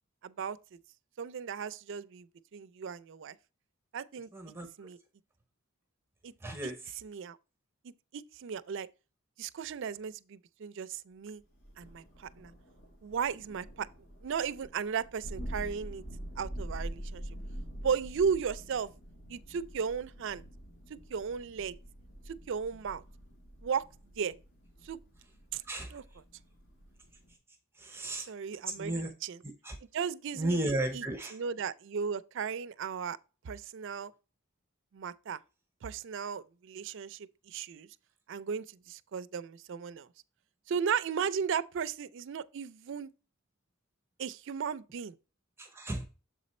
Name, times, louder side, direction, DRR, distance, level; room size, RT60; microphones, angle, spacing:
voice 1, 0.2-0.6 1.2-2.3 2.5-3.4 3.9-4.3 4.8-5.0 6.2-6.3 6.6-7.4 8.1-8.9 9.4-11.4 11.8-12.5 13.0-13.9 14.2-16.0 16.4-17.2 17.8-18.9 19.3-20.4 20.9-21.8 22.3-23.0 23.6-23.8 24.2-24.3 24.8-25.0 25.5-25.6 25.9-26.0 28.2-29.4 29.9-31.0 31.3-33.2 33.4-34.1 34.9-35.4 35.8-37.9 38.3-40.1 40.7-43.1 44.2-45.2, right 6 dB, 60° right, 0.4 m, -35 dB
voice 2, 4.3-4.7 6.4-6.8 25.7-25.9 27.8-28.3 28.8-29.1 29.6-29.8 30.4-31.3 45.6-46.0, right 1 dB, 10° right, 0.7 m, -34 dB
Thunder, 11.6-27.3, equal, 55° left, 1.8 m, -46 dB
7.2 x 4.1 x 4.2 m
head